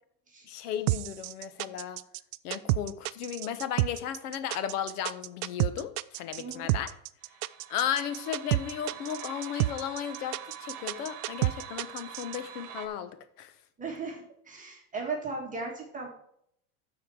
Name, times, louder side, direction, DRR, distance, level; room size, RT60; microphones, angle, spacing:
voice 1, 0.5-2.0 2.4-6.9 7.7-13.5, left 9 dB, 80° left, 11 dB, 1.2 m, -35 dB
sound 1, 0.9-12.4, right 20 dB, 75° right, 0.5 m, -29 dB
voice 2, 6.4-6.7 13.8-16.1, right 4 dB, 15° right, 0 dB, 1.7 m, -37 dB
sound 2, 7.2-12.9, right 9 dB, 45° right, 1.5 m, -45 dB
13.0 x 4.4 x 4.8 m, 0.69 s
supercardioid pair, 140°, 44 cm